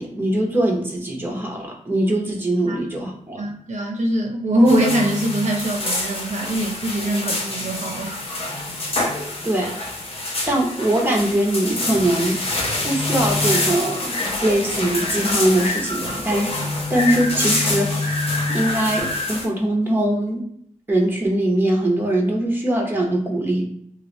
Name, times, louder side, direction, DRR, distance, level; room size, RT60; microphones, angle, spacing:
voice 1, 0.0-3.4 9.4-9.7 10.5-12.4 12.8-14.2 14.4-16.5 16.9-18.1 18.5-20.4 20.9-23.7, right 1 dB, 15° right, 0 dB, 0.8 m, -21 dB
voice 2, 3.4-8.3, right 1 dB, 60° right, 1 dB, 0.6 m, -22 dB
sound 1, 4.7-19.5, left 2 dB, 45° left, 0.7 m, -26 dB
3.0 x 2.5 x 3.0 m, 0.68 s
wide cardioid pair, 120°, 13 cm